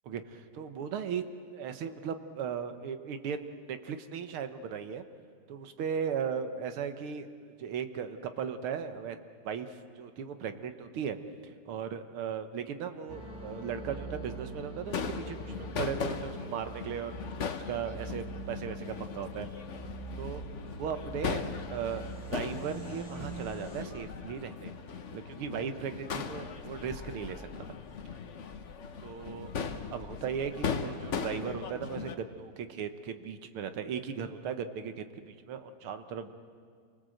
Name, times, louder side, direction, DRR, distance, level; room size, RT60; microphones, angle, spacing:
voice 1, 0.1-1.2 1.5-5.0 5.5-7.3 7.6-11.2 11.4-17.1 17.5-19.5 20.2-20.4 20.8-24.7 25.1-27.8 29.0-36.3, right 7 dB, 80° right, 9 dB, 2.0 m, -37 dB
sound 1, 13.1-23.8, right 2 dB, 25° right, 3.5 m, -43 dB
Crowd / Fireworks, 14.9-32.2, left 6 dB, 50° left, 0.9 m, -39 dB
27.5 x 19.5 x 7.8 m, 2.1 s
omnidirectional pair, 2.3 m